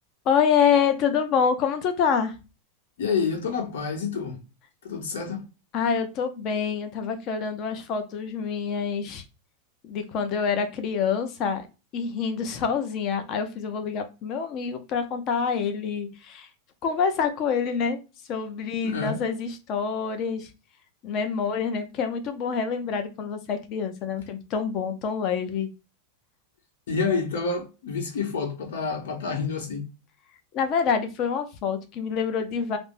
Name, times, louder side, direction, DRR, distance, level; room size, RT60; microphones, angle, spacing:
voice 1, 0.3-2.3 5.7-9.2 9.8-11.7 11.9-16.5 16.8-18.0 18.3-20.5 21.0-25.7 30.5-32.8, left 6 dB, 35° left, 0.5 m, -26 dB
voice 2, 3.0-4.4 4.8-5.4 18.8-19.2 26.9-29.8, left 5 dB, 85° left, 0.9 m, -28 dB
3.3 x 2.0 x 2.5 m
supercardioid pair, 155°, 0 cm